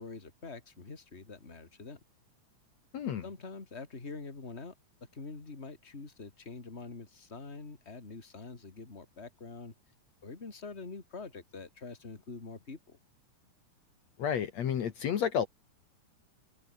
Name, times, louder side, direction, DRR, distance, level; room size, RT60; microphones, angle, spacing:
voice 1, 0.0-2.0 3.2-4.7 5.1-9.7 10.2-13.0, left 3 dB, 20° left, 3.3 m, -45 dB
voice 2, 2.9-3.2 14.2-15.5, left 8 dB, 60° left, 2.8 m, -31 dB
omnidirectional pair, 3.5 m